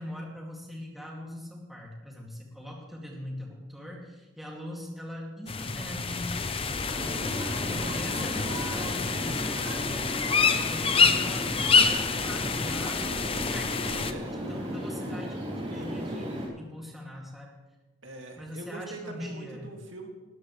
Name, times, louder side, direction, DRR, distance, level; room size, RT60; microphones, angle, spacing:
voice 1, 0.0-6.6 6.9-13.1 13.5-15.4 15.7-17.5 18.4-19.8, equal, ahead, -3 dB, 2.3 m, -41 dB
sound 1, 5.5-14.1, left 5 dB, 25° left, 0.6 m, -27 dB
sound 2, 6.9-16.5, equal, 30° right, 3.7 m, -35 dB
voice 2, 14.0-14.3 18.0-20.1, right 2 dB, 70° right, 2 dB, 2.1 m, -42 dB
19.5 x 13.5 x 3.2 m, 1.2 s
head